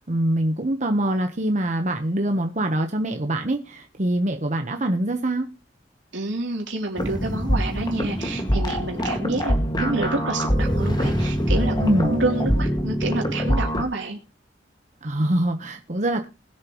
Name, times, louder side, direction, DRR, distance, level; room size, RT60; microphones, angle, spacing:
voice 1, 0.0-5.5 11.8-12.2 15.0-16.3, right 1 dB, 40° right, 1.1 m, -24 dB
voice 2, 6.1-11.7 12.1-14.2, right 2 dB, 90° right, 3.1 m, -28 dB
sound 1, 7.0-13.8, equal, 25° left, 1.9 m, -24 dB
20.5 x 7.5 x 3.1 m
head